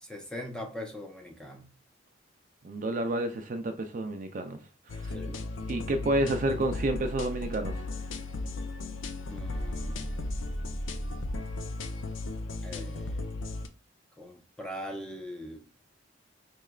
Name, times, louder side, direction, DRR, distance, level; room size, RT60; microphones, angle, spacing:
voice 1, 0.0-1.7 5.1-5.5 9.3-10.1 12.6-13.3 14.2-15.6, left 1 dB, 5° left, 0.7 m, -41 dB
voice 2, 2.6-4.6 4.9-5.1 5.7-7.7, right 1 dB, 45° right, 0.4 m, -30 dB
sound 1, 4.9-13.7, left 2 dB, 85° left, 0.5 m, -35 dB
4.5 x 3.2 x 2.3 m
head